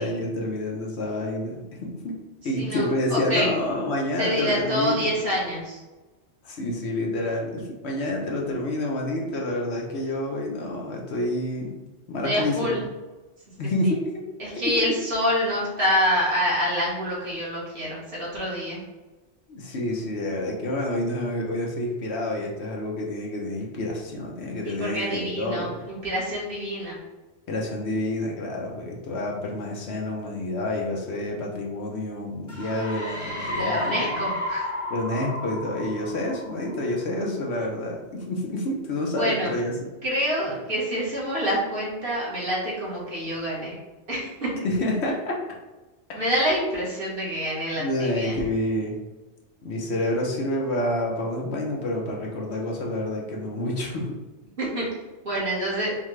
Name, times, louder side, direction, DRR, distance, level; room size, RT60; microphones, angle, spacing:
voice 1, 0.0-2.2 2.4-5.1 6.4-11.8 12.1-12.9 13.6-14.7 19.5-25.8 27.5-34.3 34.9-39.7 44.6-45.4 46.1-46.3 47.8-49.0 49.6-54.2, left 1 dB, 70° left, -1 dB, 1.1 m, -28 dB
voice 2, 2.5-3.5 4.2-5.8 12.2-12.8 13.8-13.9 14.4-18.8 24.6-27.0 33.5-34.7 39.1-39.5 40.0-43.8 44.1-44.5 46.1-48.4 54.6-54.9 55.2-56.0, equal, 55° right, -6 dB, 1.7 m, -27 dB
sound 1, 32.5-37.0, left 1 dB, 15° left, 0.8 m, -32 dB
5.6 x 2.3 x 3.2 m, 1.1 s
omnidirectional pair, 1.2 m